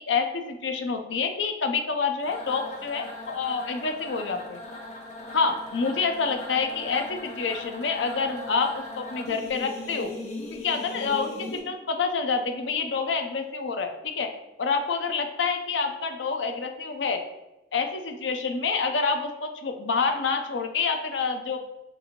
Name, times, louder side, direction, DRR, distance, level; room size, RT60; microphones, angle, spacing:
voice 1, 0.0-4.6 5.3-10.1 10.5-14.3 14.6-17.2 17.7-21.6, left 4 dB, 85° left, 6 dB, 0.6 m, -27 dB
sound 1, 2.2-11.6, left 2 dB, 40° left, 0.8 m, -39 dB
6.5 x 2.6 x 2.9 m, 0.94 s
head